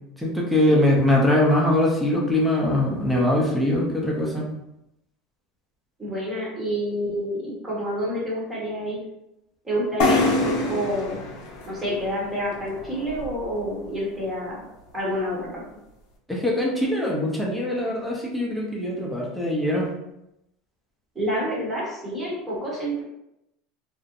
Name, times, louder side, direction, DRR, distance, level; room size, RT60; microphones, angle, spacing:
voice 1, 0.2-4.4 16.3-19.9, left 1 dB, ahead, -4 dB, 0.6 m, -22 dB
voice 2, 6.0-9.0 9.6-11.2 11.7-14.7 14.9-15.5 21.1-23.0, equal, 20° right, -5 dB, 0.9 m, -28 dB
sound 1, 10.0-13.6, left 2 dB, 60° left, 0.6 m, -26 dB
2.5 x 2.0 x 2.8 m, 0.86 s
supercardioid pair, 120°, 0 cm